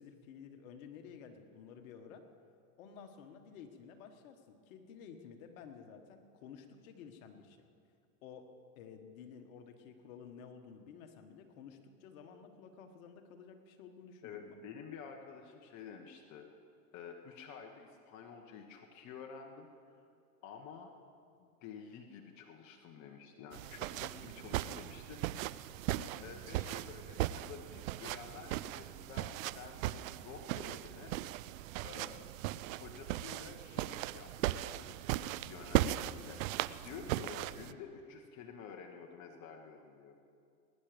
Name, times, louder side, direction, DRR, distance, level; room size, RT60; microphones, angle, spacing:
voice 1, 0.0-2.2 2.8-7.6 8.2-8.5 8.8-14.6 26.0-26.3 32.0-32.3, left 7 dB, 65° left, 5 dB, 1.7 m, -53 dB
voice 2, 14.2-16.5 16.9-20.1 20.4-20.9 21.4-25.2 26.2-31.2 31.8-32.3 32.7-36.4 36.8-40.2, left 6 dB, 40° left, 3 dB, 1.4 m, -50 dB
sound 1, 23.5-37.7, right 15 dB, 65° right, 0.6 m, -38 dB
21.0 x 10.5 x 5.2 m, 2.4 s
hypercardioid pair, 120°, 44 cm